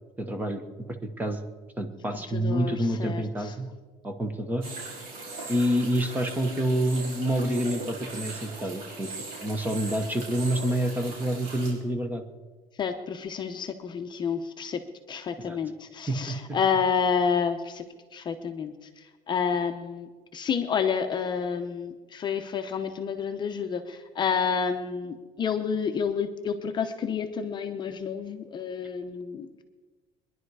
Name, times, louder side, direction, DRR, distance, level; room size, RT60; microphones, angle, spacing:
voice 1, 0.2-0.6 1.0-1.5 1.8-3.7 4.0-4.6 5.5-9.1 9.4-12.2 15.5-15.6 16.1-16.6, right 1 dB, 10° right, 6 dB, 1.1 m, -28 dB
voice 2, 2.1-3.5 12.8-14.8 15.1-17.8 18.1-18.7 19.3-29.6, left 6 dB, 30° left, 6 dB, 0.8 m, -29 dB
sound 1, 4.6-11.7, right 3 dB, 65° right, 5.6 m, -40 dB
22.5 x 11.0 x 4.8 m, 1.4 s
cardioid pair, 170°, 15 cm